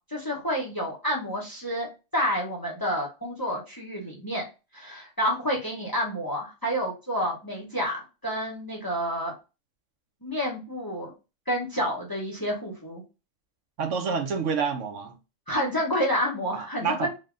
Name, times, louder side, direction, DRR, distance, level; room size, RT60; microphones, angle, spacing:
voice 1, 0.1-4.5 4.7-9.3 10.2-11.1 11.5-13.0 15.5-17.1, equal, 20° left, 0.7 m, -29 dB
voice 2, 13.8-15.2 16.5-17.1, right 5 dB, 70° right, 1.0 m, -28 dB
3.4 x 2.1 x 3.7 m
omnidirectional pair, 1.3 m